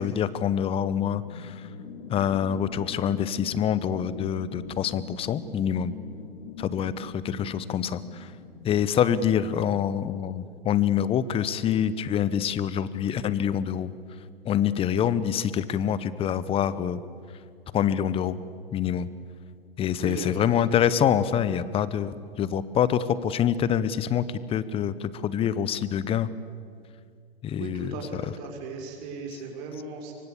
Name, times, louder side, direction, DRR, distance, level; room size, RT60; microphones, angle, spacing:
voice 1, 0.0-1.7 2.1-5.9 6.6-8.3 8.6-13.9 14.4-17.0 17.7-18.3 18.7-19.1 19.8-26.3 27.4-28.4 29.3-29.4, left 9 dB, 20° left, 17 dB, 0.9 m, -26 dB
sound 1, 0.8-8.8, left 6 dB, 50° left, 3.9 m, -43 dB
voice 2, 20.0-20.5 27.6-30.1, right 4 dB, 45° right, 2 dB, 6.3 m, -37 dB
25.5 x 24.0 x 8.5 m, 2.3 s
figure-of-eight pair, 110°, 30 cm